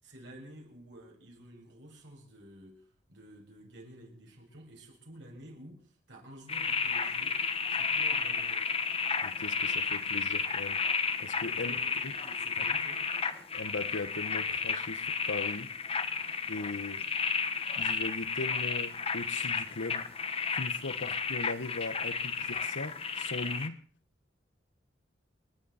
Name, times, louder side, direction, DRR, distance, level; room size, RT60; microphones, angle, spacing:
voice 1, 0.0-8.7 11.5-13.0 21.0-21.2, right 1 dB, 75° right, 6.4 m, -51 dB
sound 1, 6.5-23.7, left 5 dB, 35° left, 1.3 m, -32 dB
voice 2, 9.2-10.8 11.2-11.7 12.0-12.1 12.6-12.7 13.5-15.7 16.5-17.1 17.8-20.1 20.5-23.8, left 3 dB, 85° left, 1.0 m, -39 dB
29.0 x 11.5 x 4.2 m
head